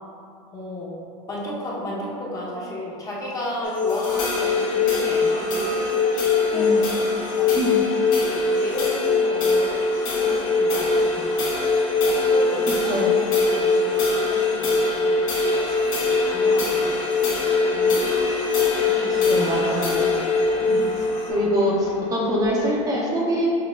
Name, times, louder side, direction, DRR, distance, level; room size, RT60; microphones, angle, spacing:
voice 1, 0.5-1.0 1.3-16.9 17.3-17.4 17.7-18.0 18.8-20.0 20.6-20.9 21.2-21.3 21.6-22.1, left 1 dB, 20° left, -5 dB, 0.7 m, -34 dB
sound 1, 3.6-21.3, left 4 dB, 55° left, 1.0 m, -22 dB
sound 2, 3.9-22.5, left 1 dB, 80° left, 1.3 m, -30 dB
voice 2, 19.3-20.1 21.3-23.5, equal, 20° right, -4 dB, 0.5 m, -24 dB
6.0 x 2.0 x 2.3 m, 2.5 s
supercardioid pair, 120°, 17 cm